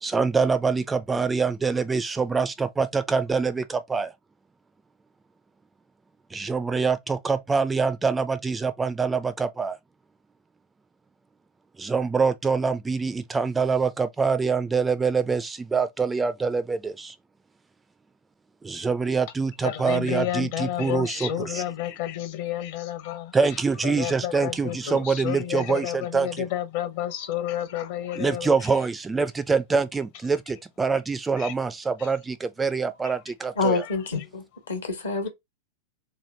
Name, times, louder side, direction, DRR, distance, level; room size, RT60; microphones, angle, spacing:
voice 1, 0.0-4.1 6.3-9.8 11.8-17.1 18.6-21.6 23.3-26.5 28.2-33.8, right 5 dB, 15° right, 0.3 m, -25 dB
voice 2, 19.6-23.3 23.8-28.5 31.4-31.5 33.0-33.1, left 12 dB, 50° left, 0.8 m, -31 dB
voice 3, 33.6-35.3, left 4 dB, 70° left, 1.0 m, -27 dB
3.1 x 2.4 x 3.4 m
figure-of-eight pair, 90°, 0 cm